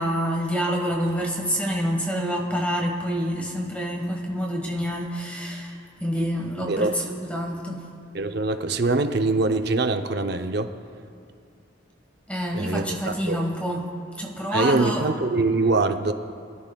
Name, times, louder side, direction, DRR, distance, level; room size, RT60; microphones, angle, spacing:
voice 1, 0.0-7.8 12.3-13.9 14.2-15.1, equal, 5° left, 1 dB, 1.2 m, -27 dB
voice 2, 8.1-10.7 12.5-13.4 14.5-16.1, right 3 dB, 55° right, 7 dB, 0.6 m, -23 dB
23.5 x 13.5 x 2.3 m, 2.3 s
head